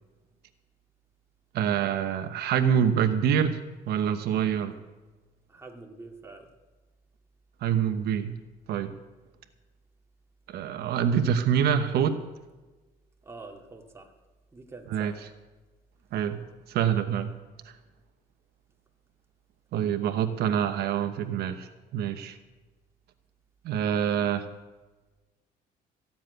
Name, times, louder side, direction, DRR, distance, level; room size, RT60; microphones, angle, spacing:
voice 1, 1.5-3.6 3.9-4.7 7.6-8.3 8.7-8.9 10.5-12.2 14.9-15.1 16.1-16.4 16.7-17.3 19.7-22.4 23.6-24.5, right 8 dB, 70° right, 8 dB, 1.1 m, -26 dB
voice 2, 5.5-6.5 13.2-14.1 14.5-15.2, right 3 dB, 15° right, 1 dB, 2.4 m, -46 dB
15.0 x 7.5 x 9.2 m, 1.2 s
cardioid pair, 110°, 17 cm